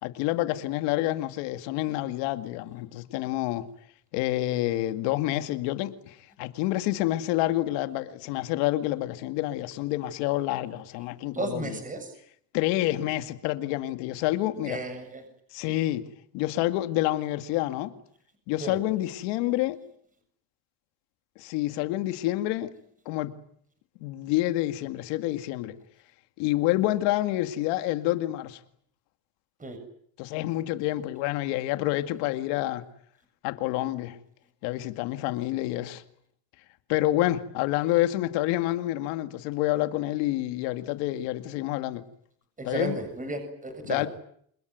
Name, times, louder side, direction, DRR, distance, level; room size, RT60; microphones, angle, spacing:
voice 1, 0.0-3.7 4.1-11.8 12.5-14.8 15.5-16.1 16.3-17.9 18.5-19.8 21.4-22.7 23.1-23.3 24.0-25.8 26.4-28.6 30.2-32.8 33.4-34.2 34.6-36.0 36.9-42.0 42.6-43.0 43.8-44.1, left 16 dB, 85° left, 2.3 m, -28 dB
voice 2, 11.3-12.1 14.6-15.2 18.6-18.8 29.6-29.8 42.6-44.0, right 2 dB, 20° right, 7.3 m, -33 dB
28.5 x 21.5 x 9.4 m
supercardioid pair, 105°, 42 cm